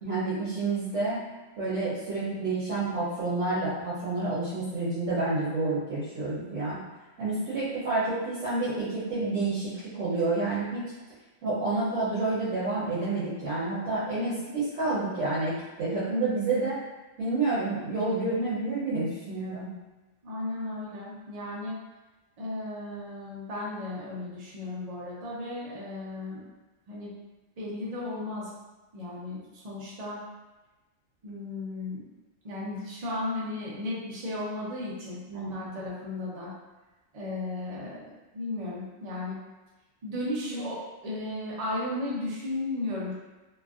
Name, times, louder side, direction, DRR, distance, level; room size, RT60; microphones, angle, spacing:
voice 1, 0.0-1.3 1.6-6.8 7.2-10.9 11.4-16.8 17.2-19.7 35.3-35.8 40.5-40.6, right 3 dB, 65° right, -10 dB, 1.1 m, -29 dB
voice 2, 20.2-21.8 22.4-26.4 26.9-27.1 27.6-28.5 28.9-30.2 31.2-32.0 32.4-36.5 37.1-39.4 40.0-43.1, left 2 dB, 40° right, -6 dB, 0.6 m, -35 dB
2.9 x 2.5 x 2.4 m, 1.1 s
omnidirectional pair, 1.4 m